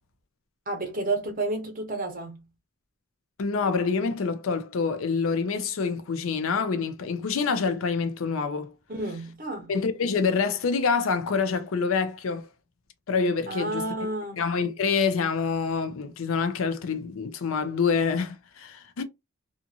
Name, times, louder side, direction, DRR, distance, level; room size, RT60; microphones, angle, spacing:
voice 1, 0.7-2.4 8.9-9.7 13.5-14.4, right 2 dB, 40° right, 0.8 m, -31 dB
voice 2, 3.4-8.7 9.7-12.5 13.1-13.9 14.4-19.0, left 5 dB, 75° left, 0.5 m, -26 dB
2.5 x 2.5 x 2.7 m
head